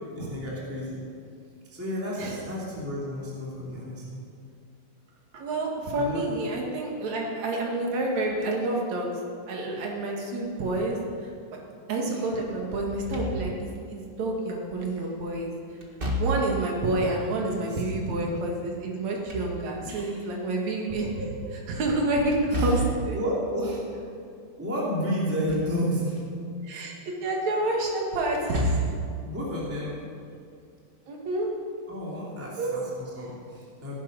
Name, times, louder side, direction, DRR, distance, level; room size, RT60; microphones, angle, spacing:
voice 1, 0.1-1.0 1.7-4.2 5.9-6.2 12.1-12.2 17.4-17.8 19.9-20.3 20.9-21.2 22.5-22.7 23.1-23.8 24.6-26.2 29.2-30.0 31.9-34.0, equal, 5° right, -6 dB, 2.5 m, -32 dB
voice 2, 5.3-9.2 9.5-11.3 11.9-15.5 16.2-21.1 21.7-23.2 26.6-28.8 31.1-31.5 32.6-32.8, right 2 dB, 65° right, -1 dB, 3.2 m, -28 dB
Slam / Thump thud, 12.9-13.8 15.8-16.7 18.9-20.0 22.3-23.1 25.2-25.8 26.2-26.3 28.3-29.1, right 1 dB, 30° right, 1.0 m, -30 dB
17.0 x 10.5 x 5.5 m, 2.5 s
omnidirectional pair, 3.5 m